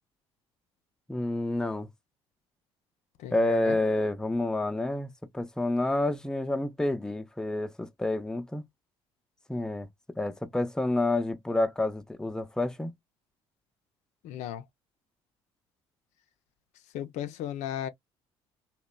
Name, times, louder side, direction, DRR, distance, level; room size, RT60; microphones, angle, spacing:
voice 1, 1.1-1.9 3.3-8.6 9.5-9.9 10.2-12.9, left 2 dB, 5° left, 0.5 m, -29 dB
voice 2, 3.2-3.8 14.2-14.6 16.9-17.9, left 10 dB, 70° left, 0.4 m, -35 dB
2.8 x 2.1 x 2.2 m
hypercardioid pair, 65°, 12 cm